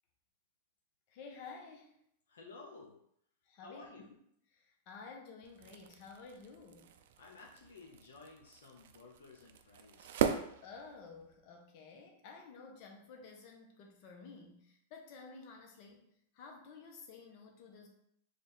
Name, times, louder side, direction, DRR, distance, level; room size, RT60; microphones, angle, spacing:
voice 1, 1.1-2.0 3.4-3.9 4.5-6.9 10.6-16.0 16.3-17.9, left 4 dB, 50° left, 1 dB, 0.8 m, -52 dB
voice 2, 2.3-3.0 3.6-4.1 7.2-10.3, left 3 dB, 85° left, 0 dB, 0.7 m, -54 dB
sound 1, 5.4-11.4, right 8 dB, 70° right, 0.3 m, -40 dB
3.3 x 2.5 x 4.0 m, 0.72 s
hypercardioid pair, 120°, 0 cm